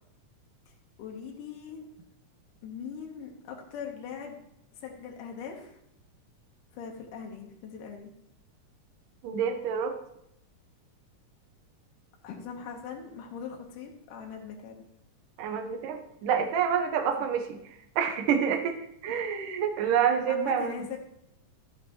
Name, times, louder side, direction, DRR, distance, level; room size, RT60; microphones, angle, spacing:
voice 1, 1.0-1.9 2.6-4.4 4.8-5.8 6.7-8.1 12.2-14.8 20.3-21.0, left 7 dB, 80° left, 1 dB, 2.7 m, -40 dB
voice 2, 9.2-9.9 15.4-17.6 18.0-18.8 19.0-20.8, right 7 dB, 85° right, 5 dB, 2.6 m, -27 dB
14.0 x 7.4 x 3.0 m, 0.77 s
omnidirectional pair, 3.7 m